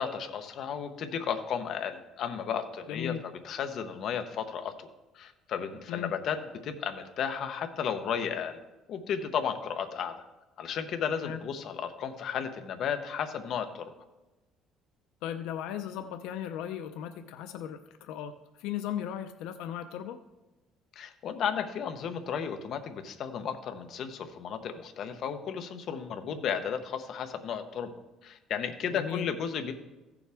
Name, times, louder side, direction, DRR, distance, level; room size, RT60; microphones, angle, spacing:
voice 1, 0.0-4.9 5.1-8.6 8.9-10.1 10.6-13.8 21.0-27.9 28.2-29.7, left 7 dB, 45° left, 7 dB, 0.8 m, -34 dB
voice 2, 2.9-3.2 5.9-6.1 11.2-11.4 15.2-20.2 28.9-29.3, left 10 dB, 85° left, 9 dB, 0.5 m, -37 dB
15.0 x 7.0 x 3.5 m, 1.1 s
cardioid pair, 165°, 0 cm